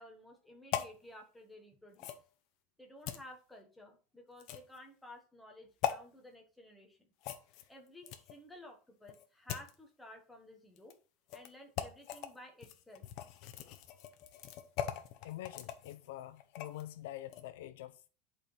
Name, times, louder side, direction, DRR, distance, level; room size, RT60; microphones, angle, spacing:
voice 1, 0.0-2.1 2.8-7.1 7.7-11.0 11.3-13.0, left 1 dB, 5° left, 1.3 m, -54 dB
sound 1, 0.7-1.0 2.0-2.2 3.1-3.2 4.4-4.8 5.8-6.0 7.2-8.4 9.1-9.7 10.8-10.9 11.3-11.5 11.8-12.3 12.6-16.9 17.2-17.4, left 11 dB, 50° left, 0.8 m, -40 dB
voice 2, 15.2-18.1, left 14 dB, 80° left, 0.6 m, -46 dB
10.5 x 4.4 x 3.4 m
supercardioid pair, 160°, 0 cm